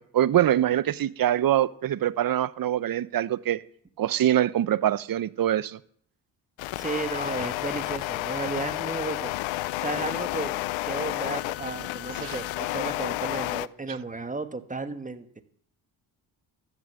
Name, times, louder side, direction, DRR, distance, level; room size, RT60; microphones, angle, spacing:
voice 1, 0.1-3.6 4.0-5.8, right 11 dB, 50° right, 0.7 m, -24 dB
sound 1, 6.6-13.7, left 18 dB, 80° left, 0.5 m, -31 dB
voice 2, 6.8-9.3 9.8-10.5 10.8-15.4, right 3 dB, 15° right, 1.4 m, -34 dB
14.0 x 6.2 x 7.6 m
supercardioid pair, 55°, 45 cm